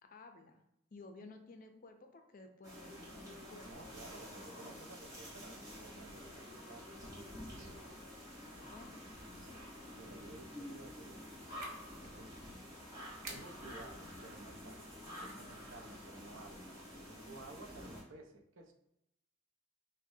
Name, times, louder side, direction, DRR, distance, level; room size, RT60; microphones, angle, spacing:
voice 1, 0.0-0.6 0.9-4.0 4.3-4.5 8.4-8.9 9.3-9.7, left 2 dB, 45° left, 5 dB, 0.5 m, -55 dB
sound 1, 2.6-18.0, left 1 dB, 15° right, 1.5 m, -50 dB
voice 2, 3.6-7.8 9.9-11.3 12.0-12.4 13.3-18.7, right 2 dB, 75° right, 4 dB, 0.6 m, -54 dB
sound 2, 7.3-17.0, right 2 dB, 45° right, 0.8 m, -58 dB
6.0 x 2.2 x 2.7 m, 0.82 s
head